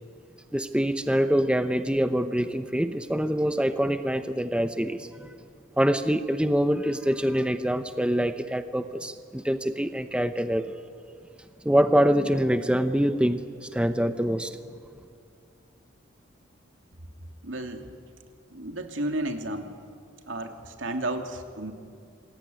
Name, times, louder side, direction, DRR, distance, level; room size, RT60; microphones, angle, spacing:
voice 1, 0.5-5.3 5.8-10.8 11.6-14.6, equal, 5° right, 9 dB, 0.8 m, -25 dB
voice 2, 17.4-18.0 18.5-19.7 20.3-21.7, right 1 dB, 75° right, 5 dB, 2.6 m, -32 dB
27.0 x 21.5 x 9.5 m, 2.3 s
head